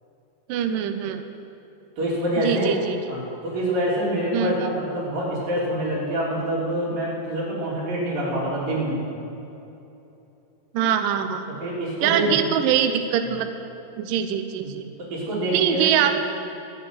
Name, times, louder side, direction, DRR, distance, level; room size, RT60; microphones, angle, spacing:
voice 1, 0.5-1.2 2.4-3.0 4.3-4.7 10.7-11.4 12.0-13.5 14.0-14.8 15.5-16.2, right 9 dB, 85° right, 8 dB, 1.9 m, -23 dB
voice 2, 2.0-2.8 3.1-9.0 11.6-12.3 15.0-16.1, right 1 dB, 55° right, -6 dB, 5.0 m, -26 dB
13.5 x 7.7 x 9.2 m, 2.9 s
omnidirectional pair, 4.7 m